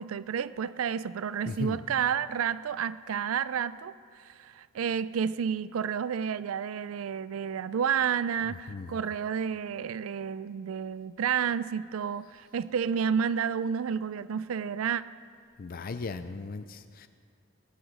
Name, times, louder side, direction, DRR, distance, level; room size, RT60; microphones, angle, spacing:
voice 1, 0.0-15.0, right 7 dB, 85° right, 16 dB, 0.4 m, -30 dB
voice 2, 1.5-1.8 8.7-9.0 15.6-17.1, left 4 dB, 45° left, 10 dB, 0.5 m, -37 dB
19.0 x 8.8 x 6.5 m, 2.2 s
head